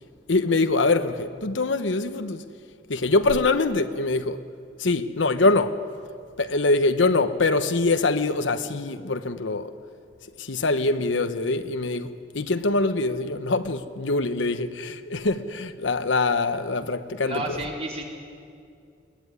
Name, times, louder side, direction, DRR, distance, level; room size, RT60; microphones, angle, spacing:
voice 1, 0.3-2.4 2.9-4.4 4.8-5.8 6.4-9.7 10.4-12.1 12.3-17.6, left 3 dB, 90° left, 1.0 m, -24 dB
voice 2, 17.2-18.0, right 1 dB, 35° right, 4.1 m, -31 dB
22.0 x 17.0 x 9.8 m
head